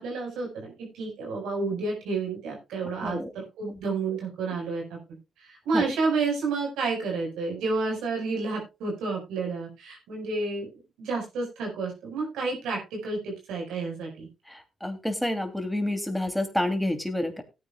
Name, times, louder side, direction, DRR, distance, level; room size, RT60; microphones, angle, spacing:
voice 1, 0.0-5.0 5.4-10.7 11.0-14.3, right 3 dB, 85° right, 0 dB, 5.0 m, -30 dB
voice 2, 14.5-17.4, left 1 dB, ahead, 6 dB, 2.8 m, -29 dB
17.5 x 9.5 x 2.3 m, 0.26 s
supercardioid pair, 55°, 0 cm